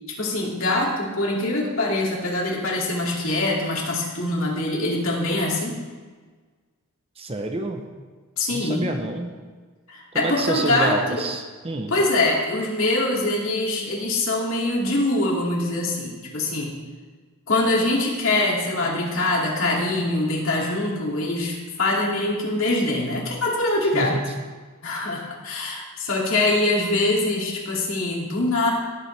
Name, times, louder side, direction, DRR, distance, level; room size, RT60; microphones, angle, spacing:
voice 1, 0.1-5.8 8.4-8.9 9.9-11.2 11.9-16.8 17.5-24.1 24.8-28.7, left 2 dB, 65° left, -3 dB, 2.5 m, -23 dB
voice 2, 7.2-7.8 8.5-9.3 10.1-11.9 23.9-24.2, right 2 dB, 25° right, 4 dB, 0.8 m, -28 dB
18.5 x 7.4 x 3.4 m, 1.4 s
head